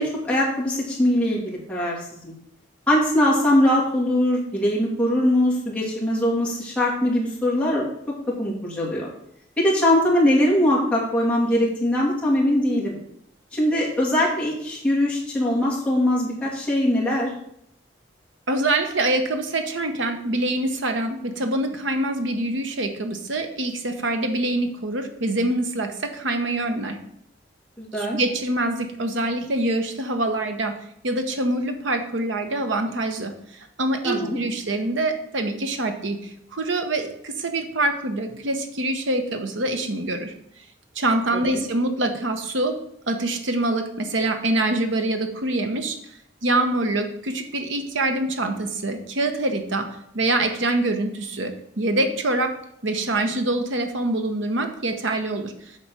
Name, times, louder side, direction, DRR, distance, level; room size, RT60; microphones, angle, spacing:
voice 1, 0.0-2.3 2.9-7.9 8.4-9.1 9.6-13.0 13.5-17.3 27.8-28.2 34.0-34.4 41.5-41.6, left 1 dB, 5° left, -6 dB, 2.5 m, -21 dB
voice 2, 18.5-27.0 28.0-30.8 31.0-33.3 33.8-40.3 40.9-42.8 43.1-46.0 46.4-49.9 50.1-52.6 52.8-55.5, right 2 dB, 80° right, 6 dB, 1.1 m, -25 dB
7.8 x 4.3 x 6.3 m, 0.72 s
head